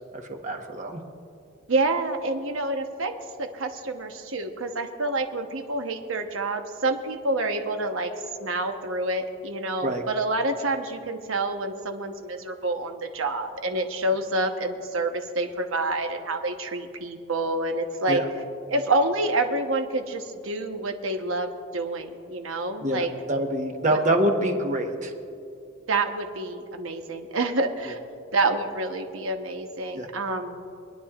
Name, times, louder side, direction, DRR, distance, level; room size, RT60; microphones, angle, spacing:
voice 1, 0.1-1.0 9.8-10.0 18.1-18.3 22.8-25.1 29.9-30.1, right 1 dB, 35° right, 3 dB, 1.1 m, -26 dB
voice 2, 1.7-3.1 3.4-8.1 8.4-18.2 18.7-23.1 23.9-24.0 25.9-28.0 28.3-30.6, right 2 dB, 80° right, 5 dB, 1.0 m, -28 dB
26.0 x 10.0 x 2.4 m, 2.5 s
head